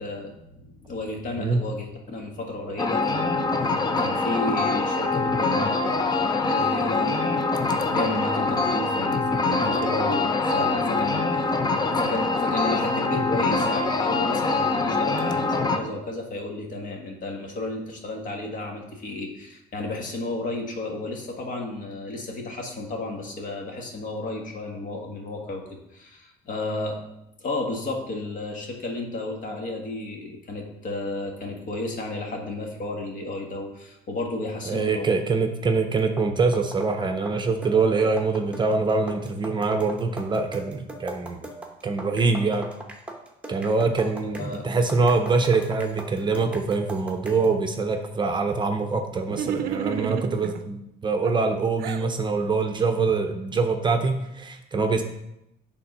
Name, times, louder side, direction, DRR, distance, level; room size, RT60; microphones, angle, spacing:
voice 1, 0.0-11.5 11.9-25.6 25.9-27.0 27.4-35.2 44.2-44.7, left 2 dB, 50° left, 1 dB, 1.5 m, -32 dB
sound 1, 2.8-15.8, left 3 dB, 25° left, 0.6 m, -24 dB
voice 2, 34.6-41.5 41.8-42.7 43.5-55.0, right 4 dB, 25° right, 5 dB, 0.6 m, -24 dB
sound 2, 36.0-47.6, right 2 dB, 5° right, 0.9 m, -40 dB
sound 3, 49.3-50.6 51.2-52.1, right 9 dB, 65° right, 0.5 m, -31 dB
7.6 x 3.7 x 5.4 m, 0.85 s
cardioid pair, 110°, 17 cm